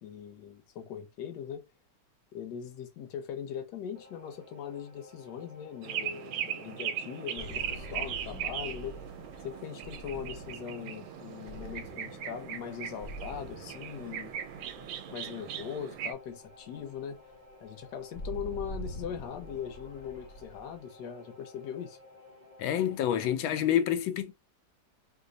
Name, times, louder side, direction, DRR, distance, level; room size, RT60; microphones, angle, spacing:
voice 1, 0.0-1.6 2.3-9.0 9.4-14.3 15.1-17.2 17.6-22.0, left 8 dB, 70° left, 1.3 m, -40 dB
sound 1, 3.9-23.3, left 2 dB, 65° right, 0.4 m, -54 dB
sound 2, 5.8-16.1, right 10 dB, 90° right, 1.3 m, -39 dB
sound 3, 7.4-15.7 16.1-16.3 16.6-20.8, equal, 50° left, 1.2 m, -45 dB
voice 2, 22.6-24.3, left 10 dB, 90° left, 1.4 m, -28 dB
3.2 x 2.1 x 3.8 m
omnidirectional pair, 2.1 m